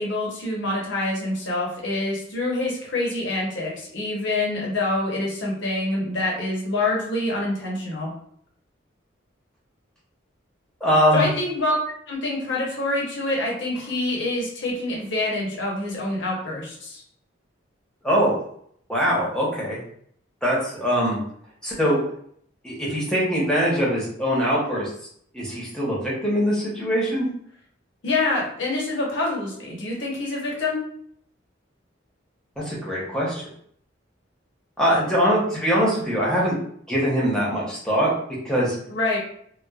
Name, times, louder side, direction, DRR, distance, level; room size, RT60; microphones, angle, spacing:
voice 1, 0.0-8.1 11.1-11.8 12.1-17.0 28.0-30.8 38.9-39.2, left 2 dB, 65° left, -3 dB, 0.8 m, -26 dB
voice 2, 10.8-11.3 18.0-18.3 18.9-19.8 20.4-21.2 21.6-22.0 22.6-24.9 25.3-27.3 32.6-33.4 34.8-36.6 36.9-38.1 38.4-38.8, equal, 5° left, -6 dB, 0.8 m, -22 dB
3.0 x 2.1 x 2.3 m, 0.64 s
head